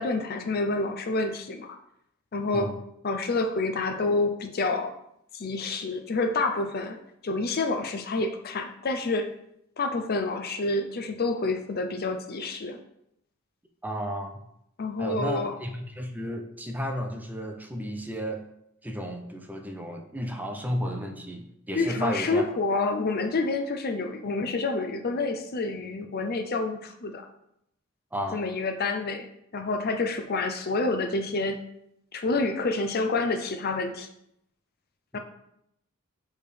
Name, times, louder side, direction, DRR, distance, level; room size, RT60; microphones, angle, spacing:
voice 1, 0.0-1.8 2.3-2.7 3.0-4.9 5.3-7.0 7.2-9.3 9.8-12.8 14.8-15.5 21.7-27.3 28.3-29.3 29.5-31.6 32.1-34.1 35.1-35.2, left 3 dB, 45° left, 7 dB, 0.6 m, -28 dB
voice 2, 13.8-14.3 15.0-18.4 18.8-22.4 28.1-28.5 35.1-35.2, equal, 10° right, 3 dB, 0.6 m, -33 dB
6.4 x 3.6 x 5.1 m, 0.77 s
head